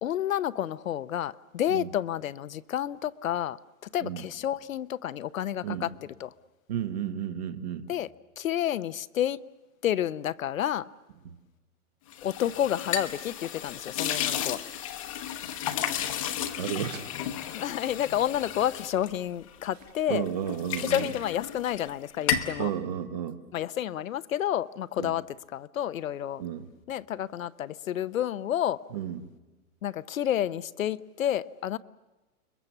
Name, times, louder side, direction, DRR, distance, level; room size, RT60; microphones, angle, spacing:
voice 1, 0.0-3.6 3.9-5.9 6.2-6.3 7.9-8.1 8.4-9.4 9.8-10.9 12.2-14.6 17.5-20.3 20.8-22.7 23.5-25.2 25.5-26.4 26.9-28.8 29.8-31.8, left 11 dB, 65° left, 0.8 m, -30 dB
voice 2, 6.7-7.9 11.2-11.3 16.6-17.1 20.1-21.1 22.6-23.4 25.0-25.1 26.4-26.7 28.9-29.2, right 9 dB, 25° right, 0.9 m, -32 dB
sound 1, 12.1-19.9 20.3-21.9 22.2-22.6, left 9 dB, 20° left, 0.9 m, -33 dB
29.5 x 22.0 x 7.2 m
hypercardioid pair, 175°, 44 cm